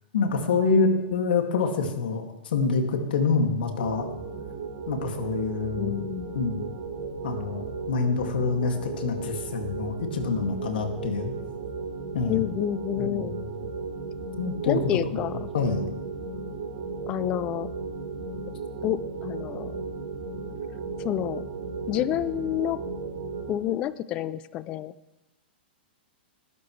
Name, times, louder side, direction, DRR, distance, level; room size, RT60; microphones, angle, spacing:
voice 1, 0.1-4.0 4.9-6.0 6.3-6.7 7.2-11.3 12.1-12.4 12.9-13.7 14.4-14.8 15.5-15.9, left 4 dB, 65° left, 3 dB, 2.2 m, -26 dB
sound 1, 3.8-23.5, right 4 dB, 65° right, 4.2 m, -35 dB
voice 2, 5.8-6.3 12.3-13.4 14.7-15.5 17.1-17.7 18.8-19.8 21.0-21.5 21.9-22.8 23.5-24.9, left 13 dB, 20° left, 17 dB, 0.3 m, -29 dB
19.5 x 12.0 x 3.2 m, 0.97 s
hypercardioid pair, 175°, 6 cm